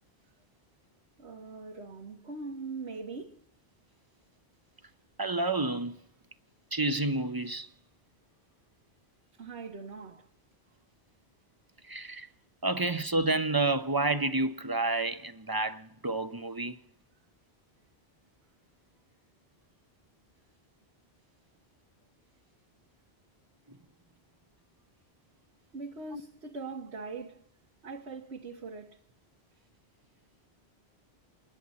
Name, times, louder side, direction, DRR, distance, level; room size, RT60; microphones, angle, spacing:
voice 1, 1.2-3.4 9.4-10.3 25.7-27.5 27.8-29.0, right 4 dB, 90° right, 1.7 m, -41 dB
voice 2, 5.2-6.0 6.7-7.7 11.9-12.3 12.6-16.8 23.7-23.8 26.1-26.2, right 2 dB, 25° right, 0.7 m, -29 dB
30.0 x 11.0 x 4.2 m
omnidirectional pair, 1.1 m